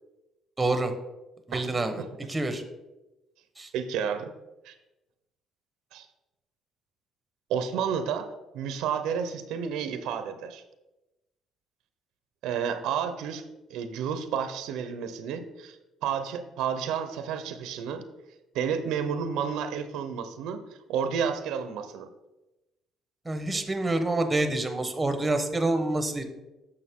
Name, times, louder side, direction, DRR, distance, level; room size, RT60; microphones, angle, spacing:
voice 1, 0.6-0.9 1.5-2.0 2.3-2.6 3.6-3.7 23.2-26.2, right 2 dB, 15° right, 8 dB, 1.0 m, -27 dB
voice 2, 3.7-4.3 4.6-4.7 5.9-6.1 7.5-10.6 12.4-13.4 13.7-15.8 16.0-18.0 18.5-20.6 20.9-22.1, right 7 dB, 90° right, 9 dB, 0.7 m, -31 dB
8.6 x 6.4 x 3.6 m, 1.0 s
cardioid pair, 120°, 0 cm